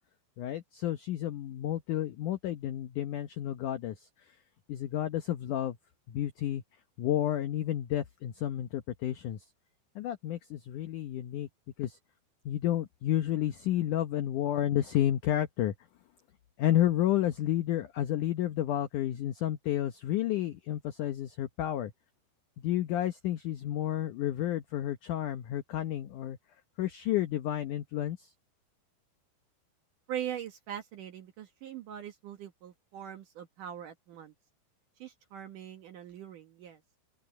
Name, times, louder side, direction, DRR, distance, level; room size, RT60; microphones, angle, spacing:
voice 1, 0.4-4.4 4.7-5.8 6.1-6.6 7.0-9.4 10.0-11.5 11.8-12.0 12.5-15.7 16.6-21.9 22.6-26.4 26.8-28.3, left 12 dB, 85° left, 1.8 m, -31 dB
voice 2, 30.1-34.3 35.0-36.8, right 10 dB, 60° right, 2.4 m, -41 dB
open air
omnidirectional pair, 4.9 m